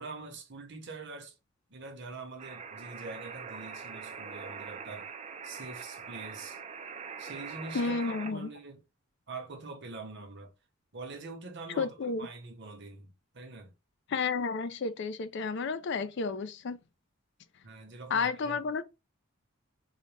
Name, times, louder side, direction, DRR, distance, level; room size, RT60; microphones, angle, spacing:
voice 1, 0.0-1.4 1.7-5.1 5.4-6.6 7.2-8.8 9.3-10.5 10.9-13.7 17.6-18.6, right 3 dB, 55° right, 0.9 m, -44 dB
sound 1, 2.4-8.3, right 6 dB, 30° right, 0.3 m, -43 dB
voice 2, 7.7-8.5 11.8-12.3 14.1-16.8 18.1-18.8, left 4 dB, 55° left, 0.4 m, -31 dB
3.9 x 2.1 x 3.2 m
head